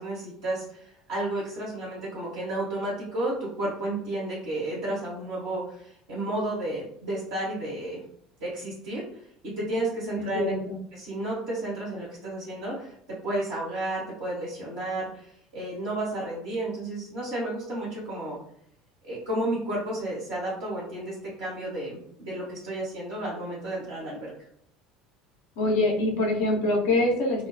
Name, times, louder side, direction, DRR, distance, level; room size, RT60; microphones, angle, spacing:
voice 1, 0.0-8.0 8.4-9.0 9.4-10.5 10.9-18.4 19.0-24.3, right 1 dB, 70° right, -7 dB, 1.0 m, -32 dB
voice 2, 10.2-10.8 25.6-27.5, left 2 dB, 65° left, -1 dB, 0.7 m, -24 dB
2.3 x 2.1 x 2.5 m, 0.68 s
hypercardioid pair, 70°, 0 cm